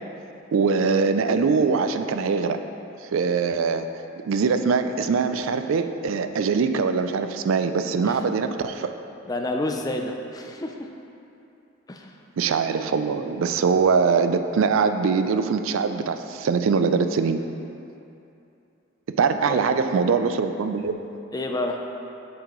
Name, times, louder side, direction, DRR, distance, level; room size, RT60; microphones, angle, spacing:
voice 1, 0.5-2.6 3.1-8.9 12.4-17.4 19.1-21.0, right 5 dB, 75° right, 9 dB, 0.4 m, -22 dB
voice 2, 9.3-10.7 11.9-12.1 19.5-19.6 21.3-21.8, left 1 dB, 20° left, 3 dB, 0.4 m, -29 dB
8.7 x 7.6 x 3.1 m, 2.8 s
head